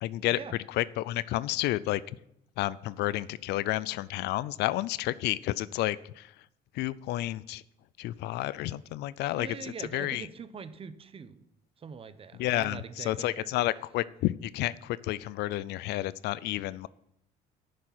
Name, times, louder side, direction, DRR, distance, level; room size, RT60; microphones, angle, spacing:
voice 1, 0.0-0.4 0.7-2.0 2.6-6.3 6.7-7.6 8.0-10.3 12.4-16.9, left 16 dB, 80° left, 19 dB, 0.4 m, -31 dB
voice 2, 9.4-11.5 11.8-13.5, right 6 dB, 35° right, 13 dB, 0.9 m, -43 dB
10.0 x 6.6 x 7.4 m, 0.76 s
cardioid pair, 110°, 17 cm